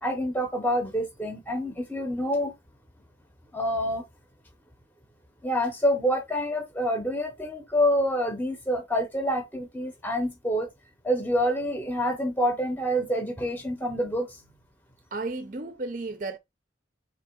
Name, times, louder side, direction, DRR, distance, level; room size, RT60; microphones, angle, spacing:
voice 1, 0.0-2.5 3.5-4.0 5.4-10.7 11.0-14.4, equal, 10° left, 0.7 m, -27 dB
voice 2, 15.1-16.4, right 3 dB, 45° right, 0.5 m, -33 dB
3.8 x 2.8 x 4.4 m
head